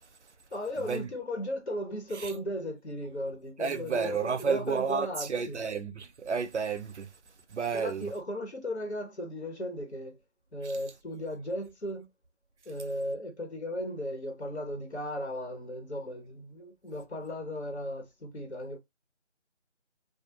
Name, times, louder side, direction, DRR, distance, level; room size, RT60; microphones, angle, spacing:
voice 1, 0.5-5.6 7.7-10.2 10.5-12.1 12.7-18.8, left 1 dB, 65° left, 0.9 m, -36 dB
voice 2, 3.6-7.1 7.5-8.1, right 6 dB, 70° right, 0.5 m, -31 dB
2.3 x 2.0 x 2.8 m
figure-of-eight pair, 175°, 36 cm